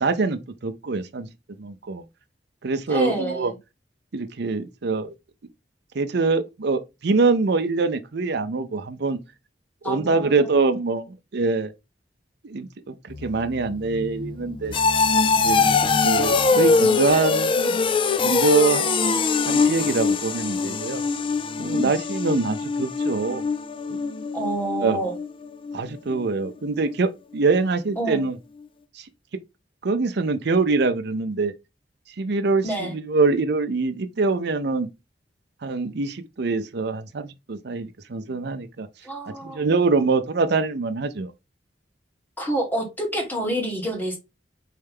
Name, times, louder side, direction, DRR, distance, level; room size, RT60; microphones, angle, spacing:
voice 1, 0.0-1.3 1.6-2.0 2.6-3.5 4.1-5.1 5.9-9.2 9.8-11.7 12.4-14.8 15.4-17.8 18.2-18.8 19.5-21.0 21.6-23.4 24.8-25.0 25.7-28.4 29.0-29.1 29.8-31.5 32.2-34.9 35.6-38.9 39.4-41.3, right 4 dB, 65° right, 0.6 m, -24 dB
voice 2, 2.9-3.5 9.8-10.3 16.5-16.6 21.6-22.0 24.3-25.1 28.0-28.2 32.6-32.9 39.0-39.7 42.4-44.2, right 1 dB, 10° left, 1.6 m, -28 dB
sound 1, 13.1-25.8 26.1-26.5 26.9-27.0, left 4 dB, 30° left, 0.4 m, -23 dB
4.5 x 3.3 x 3.5 m
head